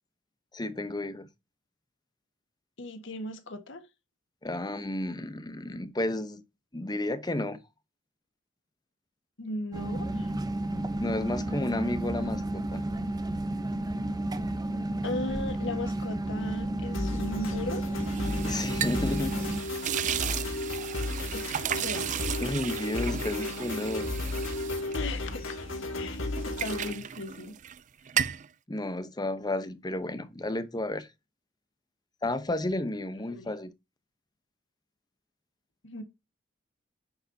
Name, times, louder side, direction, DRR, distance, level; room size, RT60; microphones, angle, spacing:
voice 1, 0.5-1.3 4.4-6.4 6.7-7.6 11.0-12.8 18.4-19.4 20.0-20.4 22.4-24.1 28.7-31.1 32.2-33.7, left 1 dB, 20° left, 0.9 m, -32 dB
voice 2, 2.8-3.9 9.4-10.3 15.0-17.8 21.3-21.5 21.8-22.1 24.9-25.5 26.0-27.6 33.3-33.5 35.8-36.0, left 2 dB, 65° left, 1.5 m, -37 dB
sound 1, 9.7-19.6, right 1 dB, 20° right, 0.9 m, -32 dB
sound 2, 16.9-27.0, left 2 dB, 85° left, 2.1 m, -34 dB
sound 3, 18.0-25.8 26.1-27.8 28.1-28.5, right 9 dB, 40° right, 0.4 m, -34 dB
9.7 x 6.7 x 2.8 m
head